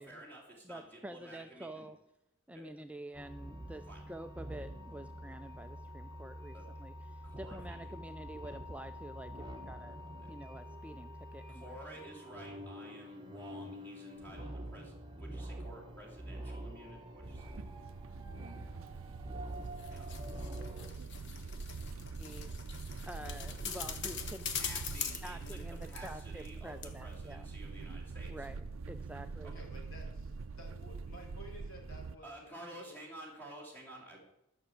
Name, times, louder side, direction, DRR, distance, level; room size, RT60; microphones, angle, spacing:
voice 1, 0.0-1.9 2.5-2.7 3.9-4.0 6.5-6.7 7.2-7.8 10.2-10.3 11.5-17.5 19.9-20.1 24.6-28.5 32.2-34.3, right 1 dB, 10° left, -3 dB, 2.7 m, -51 dB
voice 2, 0.6-2.0 2.5-10.0 10.3-11.8 22.2-22.5 23.1-24.5 25.2-27.5 28.3-29.5, right 1 dB, 5° right, 7 dB, 0.4 m, -48 dB
sound 1, 3.1-20.9, right 1 dB, 20° right, 1.1 m, -46 dB
sound 2, 17.2-32.2, right 4 dB, 70° right, 0.5 m, -44 dB
sound 3, 19.6-26.6 26.8-26.9, left 7 dB, 55° left, 1.3 m, -43 dB
voice 3, 29.5-30.1 30.6-33.0, equal, 80° left, 0 dB, 3.8 m, -53 dB
12.0 x 6.1 x 7.8 m, 0.87 s
head